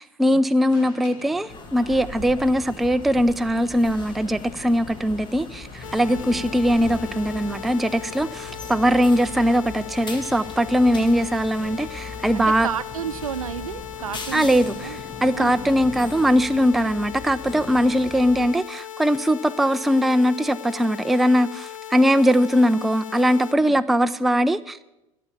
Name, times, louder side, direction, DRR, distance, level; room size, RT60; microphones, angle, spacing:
voice 1, 0.0-12.7 14.3-24.8, equal, ahead, 11 dB, 0.3 m, -21 dB
Alarm, 0.7-8.0, left 3 dB, 50° left, 2.1 m, -46 dB
sound 1, 1.5-18.5, left 3 dB, 25° left, 1.5 m, -39 dB
sound 2, 5.8-23.5, left 10 dB, 70° left, 0.7 m, -38 dB
voice 2, 6.1-6.5 10.9-11.0 12.3-15.0 15.3-15.5 23.6-23.8, right 9 dB, 70° right, 14 dB, 0.6 m, -32 dB
12.5 x 8.5 x 8.2 m, 0.94 s
figure-of-eight pair, 75°, 18 cm